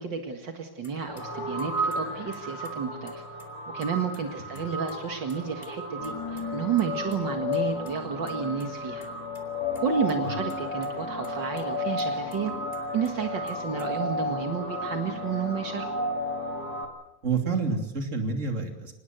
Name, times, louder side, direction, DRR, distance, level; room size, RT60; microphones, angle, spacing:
voice 1, 0.0-3.2 3.7-9.1 9.8-12.5 12.9-15.9, right 6 dB, 70° right, 5 dB, 2.4 m, -31 dB
sound 1, 0.8-0.9 1.2-1.3 1.6-2.7 3.1-3.9 4.1-4.2 4.5-5.0 5.2-5.7 6.0-7.2 7.5-7.9 8.3-8.4 8.6-8.7 9.0-9.4 9.7-10.2 10.5-10.9 11.2-11.3 11.6-11.7 12.0-13.1 13.5-13.9, left 2 dB, 25° left, 3.4 m, -52 dB
sound 2, 1.1-16.8, left 1 dB, 50° left, 3.5 m, -33 dB
voice 2, 17.2-18.9, right 4 dB, 40° right, 4 dB, 3.3 m, -28 dB
25.0 x 20.5 x 8.0 m, 0.90 s
omnidirectional pair, 2.0 m